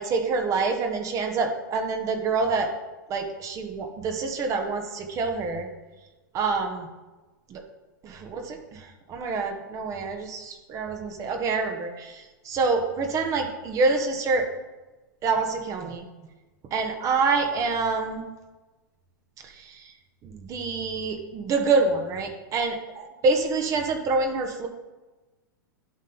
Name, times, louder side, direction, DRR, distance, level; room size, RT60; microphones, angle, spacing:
voice 1, 0.0-2.7 3.1-5.7 6.3-6.9 7.5-7.6 8.0-14.5 15.2-16.0 16.7-18.3 19.4-19.9 20.2-24.7, right 4 dB, 30° right, 5 dB, 1.2 m, -26 dB
11.5 x 5.4 x 3.9 m, 1.2 s
figure-of-eight pair, 105°, 11 cm